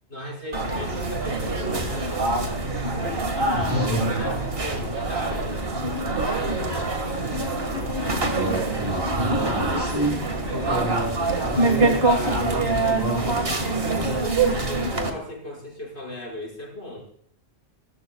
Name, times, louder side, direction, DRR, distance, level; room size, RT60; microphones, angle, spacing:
voice 1, 0.1-5.6 10.6-10.9 11.5-13.6 13.9-17.1, left 1 dB, 80° left, -2 dB, 5.7 m, -37 dB
sound 1, 0.5-15.1, right 3 dB, 60° right, 2.1 m, -25 dB
voice 2, 3.5-4.2 8.4-10.2 10.5-11.9 12.2-13.3, right 1 dB, 20° right, -2 dB, 6.9 m, -29 dB
Speech, 6.5-11.7, left 1 dB, 55° left, 3.7 m, -42 dB
26.5 x 14.5 x 2.3 m, 0.65 s
omnidirectional pair, 1.1 m